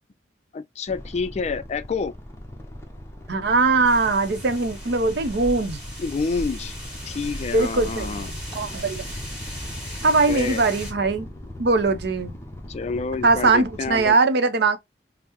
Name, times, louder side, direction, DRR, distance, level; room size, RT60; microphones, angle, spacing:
voice 1, 0.5-2.1 6.0-6.8 7.1-8.3 10.1-10.7 12.7-14.2, left 4 dB, 40° left, 0.3 m, -28 dB
sound 1, 0.9-14.1, left 1 dB, 15° left, 0.7 m, -40 dB
voice 2, 3.3-5.8 7.5-9.1 10.0-11.3 11.6-12.4 13.2-14.8, right 3 dB, 70° right, 0.6 m, -21 dB
sound 2, 3.8-10.9, equal, 10° right, 1.9 m, -36 dB
5.5 x 2.0 x 2.9 m
head